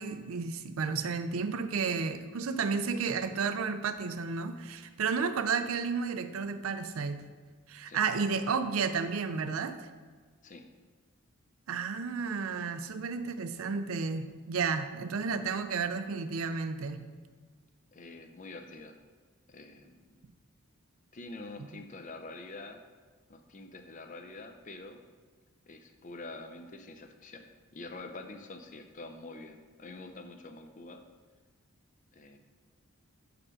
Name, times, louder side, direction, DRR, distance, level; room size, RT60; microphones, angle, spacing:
voice 1, 0.0-7.2 7.7-9.8 11.7-17.0, right 5 dB, 75° right, 10 dB, 0.5 m, -32 dB
voice 2, 17.9-18.9 19.5-20.2 21.1-22.8 23.3-25.0 25.7-27.4 27.7-31.0 32.1-32.4, left 2 dB, 35° left, 6 dB, 0.5 m, -46 dB
6.3 x 4.8 x 4.9 m, 1.5 s
head